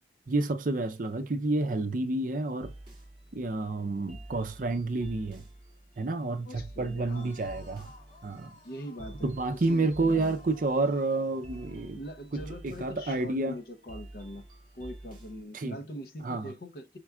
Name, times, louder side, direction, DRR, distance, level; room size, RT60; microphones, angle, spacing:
voice 1, 0.3-2.7 3.3-5.4 6.0-7.9 8.2-8.6 9.2-12.0 12.6-13.6 15.5-15.8 16.2-16.5, right 2 dB, 45° right, 0.5 m, -29 dB
sound 1, 2.6-15.4, right 1 dB, 30° right, 2.2 m, -49 dB
voice 2, 6.5-7.3 8.6-10.3 12.0-14.5 14.7-17.0, equal, 55° left, 0.7 m, -42 dB
sound 2, 7.1-12.0, left 3 dB, 40° left, 3.6 m, -56 dB
5.0 x 4.6 x 2.3 m
head